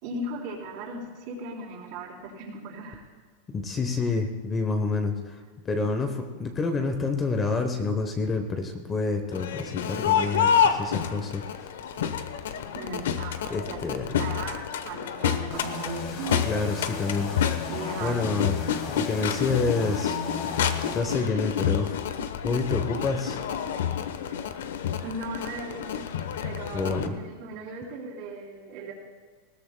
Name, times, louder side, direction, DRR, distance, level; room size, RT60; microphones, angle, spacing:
voice 1, 0.0-3.0 12.7-13.8 14.2-16.4 17.7-18.2 25.0-25.9 26.4-28.9, right 2 dB, 50° right, -2 dB, 3.4 m, -37 dB
voice 2, 3.5-11.4 13.5-14.1 16.4-17.3 18.0-18.6 18.9-20.2 20.6-22.0 22.4-23.4 26.7-27.1, left 4 dB, 15° left, 6 dB, 0.8 m, -28 dB
Crowd, 9.3-27.1, left 8 dB, 90° left, 0.9 m, -29 dB
sound 1, 15.5-21.0, left 4 dB, 50° left, 2.0 m, -36 dB
20.0 x 16.5 x 2.2 m, 1.5 s
supercardioid pair, 165°, 0 cm